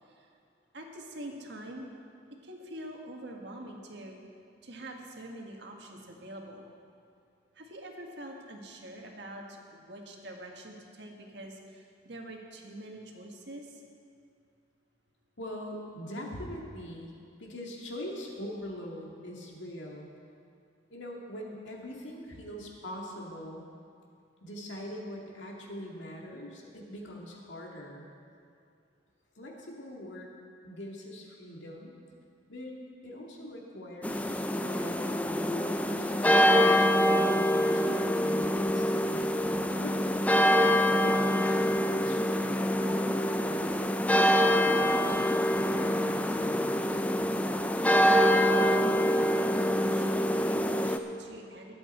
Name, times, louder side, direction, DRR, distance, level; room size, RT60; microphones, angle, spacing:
voice 1, 0.7-1.9 2.4-4.2 4.6-6.7 7.5-13.8 48.5-48.9 49.6-51.7, right 1 dB, 65° right, 1 dB, 1.5 m, -45 dB
voice 2, 15.4-17.1 17.4-20.1 20.9-23.7 24.4-28.1 29.4-30.3 30.6-31.9 32.5-32.8 33.0-36.9 37.7-39.2 39.7-47.0, equal, 80° left, -1 dB, 2.1 m, -42 dB
sound 1, 34.0-51.0, equal, 10° left, 0.3 m, -25 dB
21.0 x 7.9 x 4.3 m, 2.4 s
head